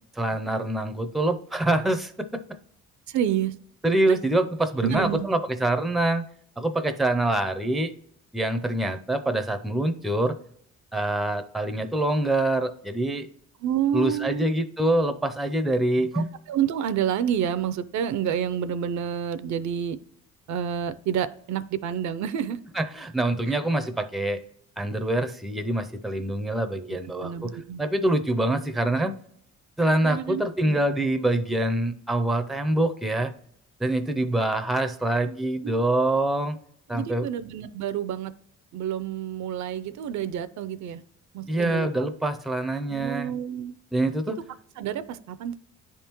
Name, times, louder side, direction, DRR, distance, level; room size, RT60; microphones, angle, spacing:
voice 1, 0.2-2.4 3.8-6.3 6.6-7.9 8.3-10.3 10.9-13.3 13.9-16.3 22.7-24.4 24.8-29.2 29.8-33.3 33.8-36.6 36.9-37.3 41.5-43.3 43.9-44.4, right 1 dB, ahead, 0.4 m, -25 dB
voice 2, 3.1-3.5 4.1-4.2 4.8-5.2 13.6-14.5 16.1-20.0 20.5-22.6 23.5-23.6 26.7-27.8 30.0-30.8 35.6-35.8 36.9-38.3 38.7-41.0 41.3-41.9 42.9-43.7 44.8-45.6, right 9 dB, 70° right, 0.4 m, -29 dB
9.9 x 3.5 x 2.9 m
cardioid pair, 90°, 30 cm